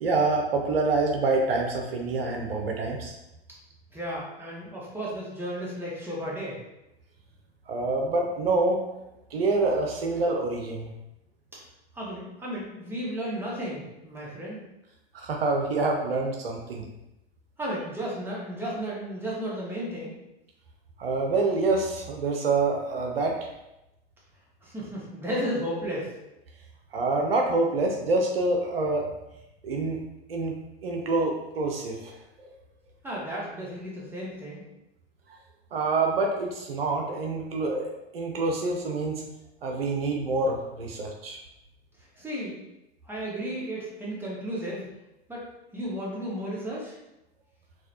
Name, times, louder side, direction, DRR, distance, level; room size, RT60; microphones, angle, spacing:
voice 1, 0.0-3.1 7.7-8.8 9.3-10.9 15.1-16.9 21.0-23.4 26.9-29.1 29.6-30.0 30.3-30.6 30.8-32.2 32.4-32.5 35.7-39.2 39.6-41.4, right 3 dB, 70° right, 1 dB, 0.6 m, -26 dB
voice 2, 3.9-6.6 11.9-14.6 17.6-20.1 24.6-26.1 33.0-34.6 42.2-42.6 43.0-44.9 45.3-45.4 45.7-46.9, equal, 5° right, -6 dB, 1.1 m, -33 dB
3.9 x 2.3 x 2.9 m, 0.90 s
figure-of-eight pair, 85°, 30 cm